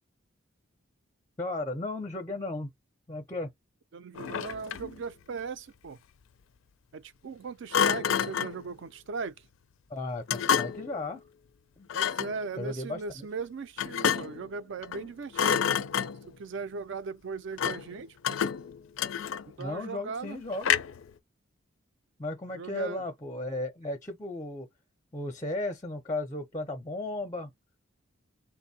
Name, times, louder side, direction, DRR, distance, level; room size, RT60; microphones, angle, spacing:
voice 1, 1.4-2.7 3.1-3.5 9.9-11.2 11.8-11.9 12.6-13.3 19.6-20.7 22.2-24.7 25.1-27.5, left 2 dB, 15° left, 0.5 m, -35 dB
voice 2, 3.9-6.0 6.9-9.3 11.9-15.7 16.2-18.4 19.5-20.4 22.5-23.0, right 4 dB, 60° right, 0.4 m, -38 dB
Thump thud, 4.2-5.0 7.7-8.6 10.3-10.9 11.9-12.4 13.8-14.5 14.8-15.1 15.3-16.4 17.6-17.9 18.2-19.6 20.6-21.1, left 8 dB, 70° left, 0.4 m, -28 dB
3.6 x 2.6 x 2.6 m
head